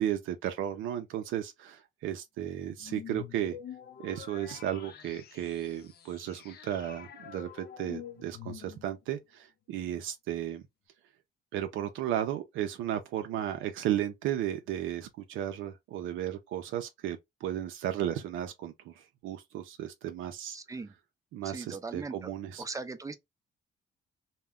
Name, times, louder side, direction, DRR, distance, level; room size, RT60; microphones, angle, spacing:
voice 1, 0.0-3.6 4.0-10.6 11.5-20.6 21.3-22.6, right 11 dB, 85° right, 0.5 m, -34 dB
sound 1, 2.8-9.1, left 9 dB, 55° left, 0.4 m, -47 dB
voice 2, 20.5-20.9 21.4-22.3 22.6-23.1, right 3 dB, 15° right, 0.5 m, -39 dB
2.2 x 2.1 x 3.5 m
cardioid pair, 90°, 20 cm